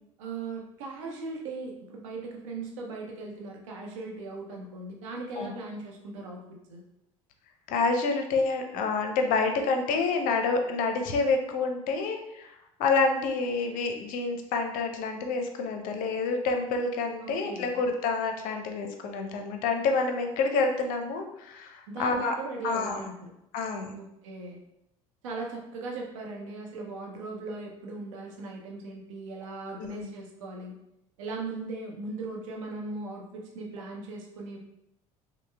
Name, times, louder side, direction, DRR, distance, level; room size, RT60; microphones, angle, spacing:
voice 1, 0.2-6.4 6.7-6.8 17.2-17.7 21.9-23.3 23.9-24.6 25.2-30.7 31.2-34.6, right 3 dB, 70° right, 0 dB, 0.7 m, -38 dB
voice 2, 7.7-22.3 22.6-23.1 23.5-24.0 29.8-30.1, left 4 dB, 50° left, 5 dB, 0.5 m, -28 dB
5.4 x 2.1 x 2.2 m, 0.84 s
figure-of-eight pair, 60°, 18 cm